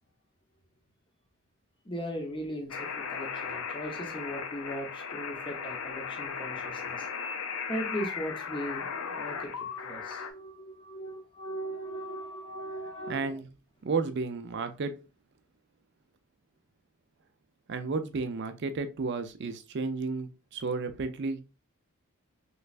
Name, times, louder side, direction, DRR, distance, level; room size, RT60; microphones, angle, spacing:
voice 1, 1.8-7.1 7.7-13.3, equal, 20° left, 0.6 m, -38 dB
sound 1, 2.7-10.3, left 6 dB, 70° left, 0.5 m, -37 dB
voice 2, 13.1-13.5 13.8-15.0 17.7-21.4, right 4 dB, 50° right, 0.4 m, -32 dB
3.3 x 3.1 x 2.4 m
head